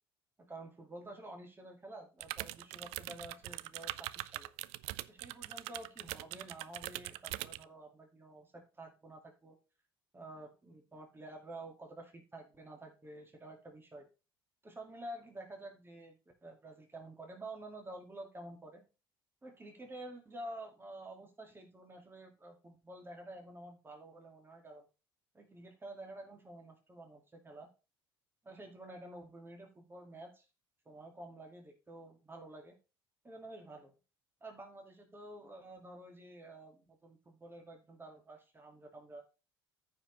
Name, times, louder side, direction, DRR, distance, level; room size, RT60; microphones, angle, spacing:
voice 1, 0.4-4.5 5.1-9.6 10.1-14.1 14.6-18.9 19.4-24.9 25.3-27.7 28.4-30.5 30.9-32.8 33.2-33.9 34.4-39.2, right 1 dB, 20° right, 2 dB, 2.2 m, -50 dB
sound 1, 2.2-7.6, right 18 dB, 60° right, 0.4 m, -42 dB
14.5 x 5.1 x 3.3 m, 0.31 s
figure-of-eight pair, 60°, 12 cm